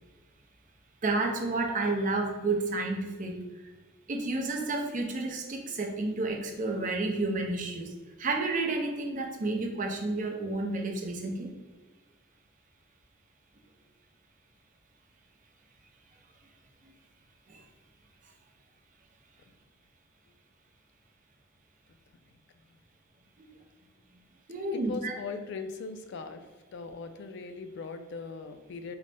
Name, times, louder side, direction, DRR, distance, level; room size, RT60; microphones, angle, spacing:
voice 1, 1.0-3.4 4.1-7.9 8.2-11.5 17.5-17.6 24.5-25.1, right 2 dB, 40° right, 2 dB, 0.5 m, -30 dB
voice 2, 24.9-26.4 26.7-29.0, left 4 dB, 60° left, 8 dB, 0.3 m, -39 dB
3.9 x 2.1 x 3.3 m, 1.3 s
head